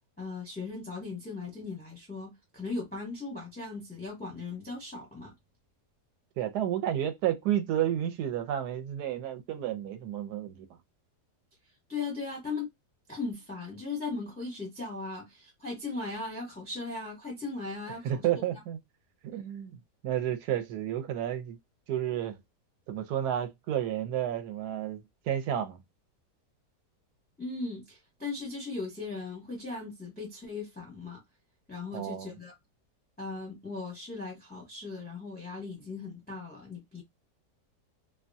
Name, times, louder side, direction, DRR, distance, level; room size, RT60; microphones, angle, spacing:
voice 1, 0.2-5.3 11.9-12.7 13.1-18.2 27.4-31.2 31.7-32.5 33.2-37.0, left 3 dB, 10° left, 0.5 m, -38 dB
voice 2, 6.4-10.7 18.0-18.8 19.2-19.8 20.0-21.6 21.9-22.4 22.9-25.0 25.3-25.8 31.9-32.3, right 11 dB, 70° right, 1.1 m, -31 dB
2.9 x 2.2 x 2.5 m
omnidirectional pair, 1.9 m